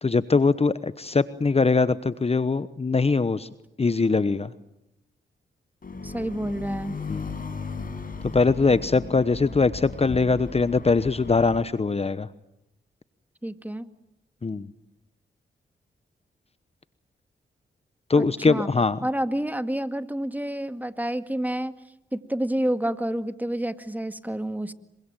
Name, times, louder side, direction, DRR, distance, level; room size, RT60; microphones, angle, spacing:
voice 1, 0.0-3.5 3.8-4.5 7.1-7.4 8.2-12.3 14.4-14.7 18.1-19.0, left 4 dB, 30° left, 15 dB, 1.0 m, -22 dB
sound 1, 5.8-11.6, left 4 dB, 50° left, 5.4 m, -36 dB
voice 2, 6.0-7.0 13.4-13.9 18.2-18.7 19.0-21.7 22.1-24.7, right 1 dB, 10° right, 10 dB, 2.0 m, -29 dB
26.0 x 24.0 x 9.1 m, 0.85 s
cardioid pair, 55°, 19 cm